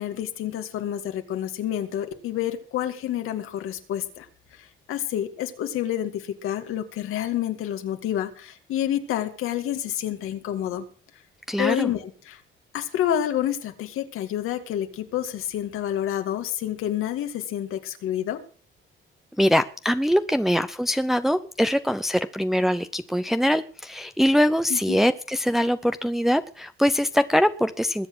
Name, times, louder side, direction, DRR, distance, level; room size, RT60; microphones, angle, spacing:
voice 1, 0.0-10.8 11.6-12.4 12.7-18.4 24.7-25.0, left 11 dB, 85° left, 7 dB, 2.1 m, -29 dB
voice 2, 11.5-11.9 19.4-28.1, equal, ahead, 9 dB, 0.7 m, -23 dB
21.0 x 8.5 x 6.1 m, 0.40 s
cardioid pair, 110°, 21 cm